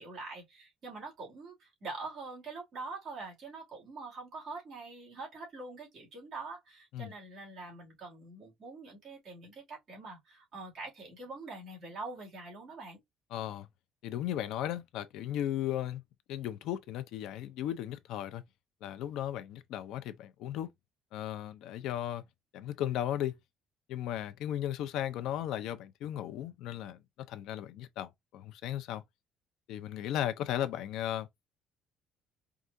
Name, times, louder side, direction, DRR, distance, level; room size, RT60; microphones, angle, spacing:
voice 1, 0.0-13.0, right 3 dB, 45° right, 2.5 m, -44 dB
voice 2, 13.3-13.7 14.0-16.0 16.3-18.4 18.8-20.7 21.1-22.2 22.5-23.3 23.9-29.0 29.7-31.3, left 11 dB, 70° left, 0.6 m, -36 dB
4.7 x 2.4 x 2.7 m
cardioid pair, 145°, 0 cm